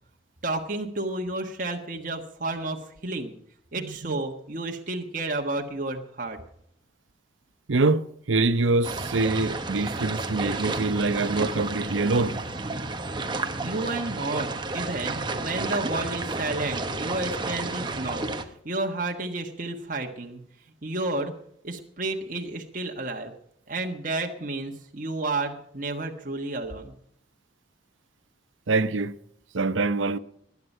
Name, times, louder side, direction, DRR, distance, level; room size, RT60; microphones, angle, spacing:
voice 1, 0.4-3.3 3.7-6.4 13.6-18.2 18.6-20.4 20.8-21.3 21.6-23.3 23.7-26.9, right 2 dB, 45° right, 1.4 m, -31 dB
voice 2, 3.8-4.2 7.7-12.4 28.7-29.1 29.5-30.2, right 3 dB, 90° right, 0.7 m, -25 dB
sound 1, 8.8-18.4, right 3 dB, 25° right, 1.0 m, -31 dB
20.0 x 9.7 x 5.5 m
head